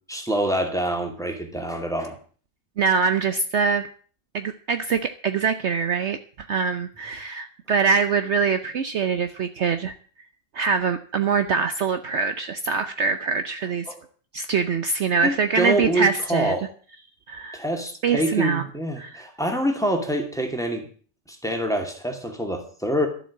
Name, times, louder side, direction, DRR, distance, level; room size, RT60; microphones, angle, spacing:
voice 1, 0.1-2.2 13.9-14.0 15.2-16.7 17.5-20.9 21.3-23.1, right 1 dB, ahead, 3 dB, 2.5 m, -26 dB
voice 2, 2.8-3.9 4.3-9.9 10.5-13.9 14.3-16.5 17.3-17.6 18.0-18.6 19.0-19.2, right 5 dB, 60° right, 10 dB, 1.0 m, -24 dB
12.5 x 7.8 x 8.5 m, 0.43 s
omnidirectional pair, 1.5 m